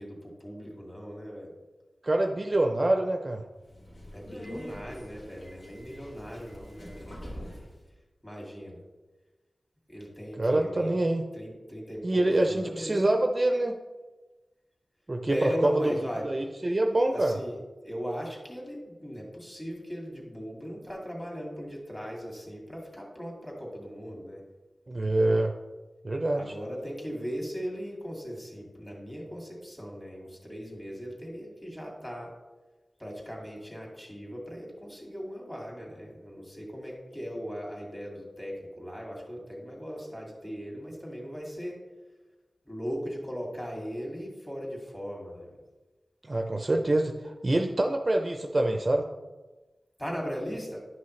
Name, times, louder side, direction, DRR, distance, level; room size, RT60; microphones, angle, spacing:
voice 1, 0.0-1.5 4.1-7.6 8.2-8.8 9.9-11.0 11.3-13.1 15.3-16.3 17.0-17.6 17.8-24.4 26.3-32.3 33.0-41.8 42.7-45.6 50.0-50.9, equal, 15° left, -1 dB, 2.3 m, -38 dB
voice 2, 2.0-3.4 10.4-11.2 12.0-13.8 15.1-17.4 24.9-25.5 26.0-26.5 46.2-49.1, right 1 dB, 30° right, 4 dB, 0.5 m, -26 dB
Subway metro underground, 3.6-7.8, equal, 50° left, 2.1 m, -44 dB
11.0 x 5.6 x 3.2 m, 1.2 s
wide cardioid pair, 80°, 0 cm